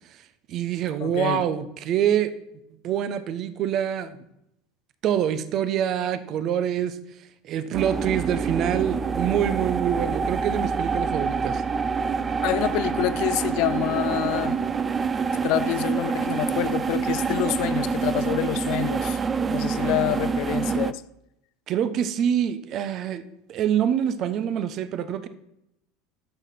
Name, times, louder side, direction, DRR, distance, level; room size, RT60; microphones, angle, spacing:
voice 1, 0.5-2.3 2.8-4.2 5.0-7.0 7.4-11.6 19.5-19.6 21.7-23.2 23.5-25.3, right 9 dB, 50° right, 0.9 m, -25 dB
voice 2, 1.0-1.4 12.4-14.6 15.4-19.2 19.5-21.0, left 15 dB, 60° left, 0.5 m, -27 dB
sound 1, 7.7-20.9, right 5 dB, 25° right, 0.5 m, -26 dB
9.7 x 6.6 x 5.9 m
hypercardioid pair, 80°, 0 cm